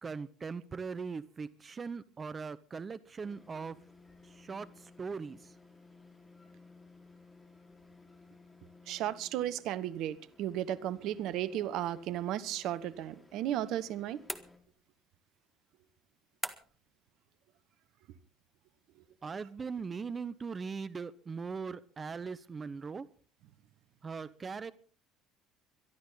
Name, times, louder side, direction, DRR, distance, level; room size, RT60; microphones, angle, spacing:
voice 1, 0.0-3.8 4.3-5.4 19.2-23.1 24.0-24.7, right 5 dB, 30° right, 15 dB, 0.8 m, -40 dB
sound 1, 3.2-14.6, left 3 dB, 15° left, 4.5 m, -59 dB
voice 2, 8.9-14.2, right 12 dB, 60° right, 16 dB, 1.0 m, -34 dB
sound 2, 14.3-15.0 16.4-16.9, right 1 dB, 5° right, 1.8 m, -41 dB
22.5 x 12.5 x 4.0 m, 0.41 s
hypercardioid pair, 60°, 0 cm